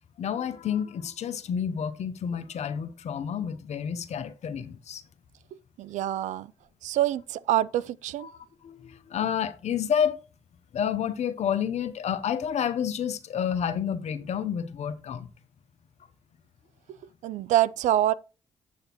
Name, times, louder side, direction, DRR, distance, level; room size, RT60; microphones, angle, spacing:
voice 1, 0.2-5.0 8.2-10.2 10.7-15.3, left 8 dB, 60° left, 0.9 m, -30 dB
voice 2, 5.8-6.5 6.8-8.3 17.2-18.1, right 13 dB, 70° right, 0.4 m, -25 dB
8.2 x 6.5 x 3.0 m
hypercardioid pair, 50°, 13 cm